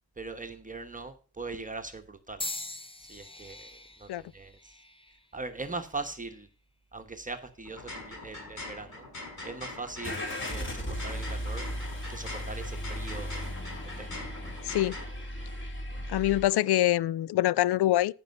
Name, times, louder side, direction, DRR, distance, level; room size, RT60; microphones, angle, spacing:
voice 1, 0.2-2.4 3.0-4.8 5.3-6.5 6.9-9.1 9.4-11.7 12.1-13.5 14.0-14.3, right 3 dB, 20° right, 1.1 m, -41 dB
sound 1, 2.4-6.5 7.2-7.7 8.6-8.8, left 2 dB, 15° left, 1.0 m, -43 dB
sound 2, 7.6-15.0, left 2 dB, 45° left, 7.0 m, -43 dB
Car / Engine starting, 10.0-16.5, equal, 30° left, 3.6 m, -36 dB
voice 2, 14.6-15.0 16.1-18.1, left 14 dB, 75° left, 0.5 m, -25 dB
15.0 x 5.6 x 5.4 m
cardioid pair, 115°, 39 cm